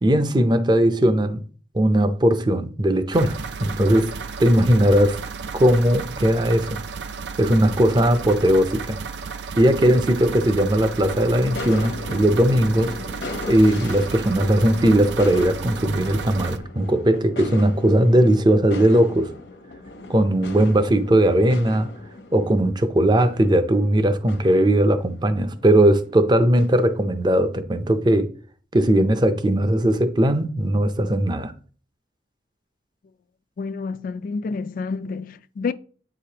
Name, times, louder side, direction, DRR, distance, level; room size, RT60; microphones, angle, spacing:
voice 1, 0.0-1.4 1.7-5.2 5.5-6.8 7.4-9.0 9.6-13.0 13.5-19.3 20.1-21.9 22.3-28.3 28.7-31.5, right 1 dB, 25° right, 0.5 m, -19 dB
sound 1, 3.1-16.6, right 5 dB, 80° right, 0.5 m, -33 dB
sound 2, 11.1-27.7, left 3 dB, 75° left, 0.9 m, -38 dB
voice 2, 33.6-35.7, left 4 dB, 50° left, 0.3 m, -29 dB
8.8 x 4.9 x 2.9 m
head